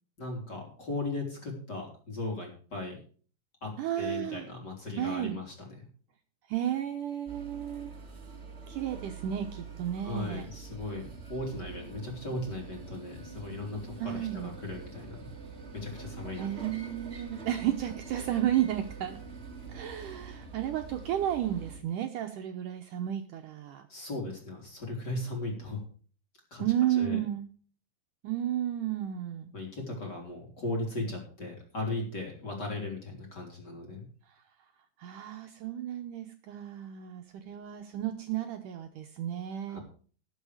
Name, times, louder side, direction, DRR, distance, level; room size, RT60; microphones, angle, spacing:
voice 1, 0.2-3.0 3.6-3.7 4.0-5.8 10.0-15.3 15.7-16.5 23.9-25.8 26.5-26.6 27.0-27.2 29.5-34.1 39.7-39.8, left 2 dB, 30° left, 0 dB, 3.7 m, -37 dB
voice 2, 3.8-4.5 5.0-5.4 6.5-7.9 8.7-10.5 14.0-14.5 16.4-19.2 19.7-23.9 26.6-27.5 28.2-29.5 35.0-39.8, right 11 dB, 70° right, 4 dB, 2.1 m, -32 dB
sound 1, 7.3-21.8, right 5 dB, 35° right, 0.9 m, -45 dB
19.0 x 6.5 x 4.9 m, 0.42 s
omnidirectional pair, 4.3 m